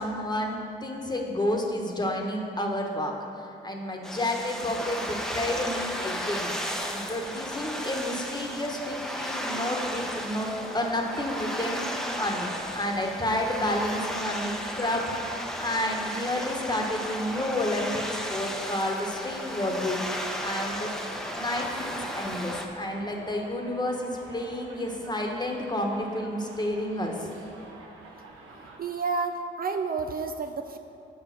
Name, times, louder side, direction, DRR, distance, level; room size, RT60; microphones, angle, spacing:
voice 1, 0.0-6.5 6.9-12.5 12.7-15.1 15.4-20.0 20.4-20.9 21.3-27.3, left 1 dB, 20° left, 1 dB, 1.2 m, -30 dB
sound 1, 4.0-22.7, equal, ahead, 0.8 m, -34 dB
Subway metro underground, 12.1-28.8, right 2 dB, 85° right, 1.1 m, -48 dB
voice 2, 28.8-30.8, right 4 dB, 45° right, 6 dB, 0.4 m, -30 dB
7.2 x 5.0 x 6.0 m, 2.9 s
cardioid pair, 65°, 21 cm